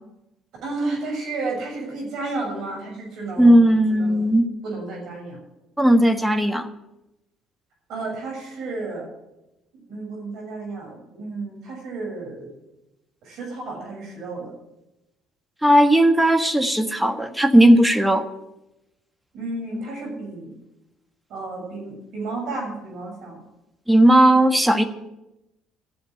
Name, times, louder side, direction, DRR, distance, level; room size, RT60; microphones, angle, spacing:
voice 1, 0.6-3.6 3.9-4.3 4.6-5.4 7.9-9.1 9.7-12.5 13.2-14.5 19.3-20.5 21.3-23.4, right 3 dB, 65° right, 1 dB, 6.6 m, -32 dB
voice 2, 3.4-4.5 5.8-6.7 15.6-18.2 23.9-24.8, right 1 dB, 5° right, 8 dB, 1.4 m, -16 dB
13.5 x 7.3 x 9.2 m, 0.93 s
supercardioid pair, 80°, 0 cm